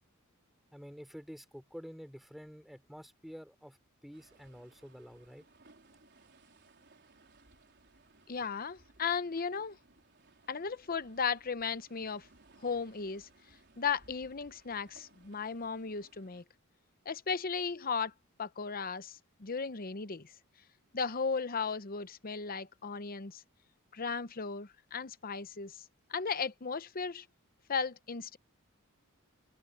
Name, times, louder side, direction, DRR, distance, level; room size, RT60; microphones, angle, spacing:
voice 1, 0.7-3.8 4.0-5.4, equal, ahead, 3.4 m, -49 dB
sound 1, 4.1-16.4, right 3 dB, 50° right, 4.3 m, -63 dB
voice 2, 8.3-9.8 10.5-12.3 12.6-13.3 13.8-16.4 17.1-18.1 18.4-20.3 20.9-23.4 23.9-25.8 26.1-27.2 27.7-28.4, left 5 dB, 40° left, 0.8 m, -36 dB
head